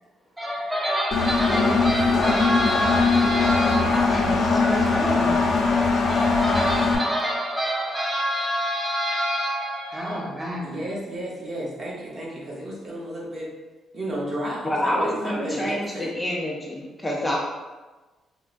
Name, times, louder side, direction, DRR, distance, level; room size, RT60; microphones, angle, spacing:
voice 1, 0.4-5.5 6.1-10.6, equal, 10° right, -4 dB, 0.9 m, -27 dB
Engine, 1.1-7.0, left 4 dB, 65° left, 0.7 m, -21 dB
voice 2, 10.6-13.5 13.9-16.1, right 1 dB, 45° right, -4 dB, 0.9 m, -32 dB
voice 3, 14.6-17.4, left 1 dB, 15° left, -3 dB, 0.5 m, -27 dB
4.4 x 2.1 x 2.5 m, 1.2 s
cardioid pair, 90°, 0 cm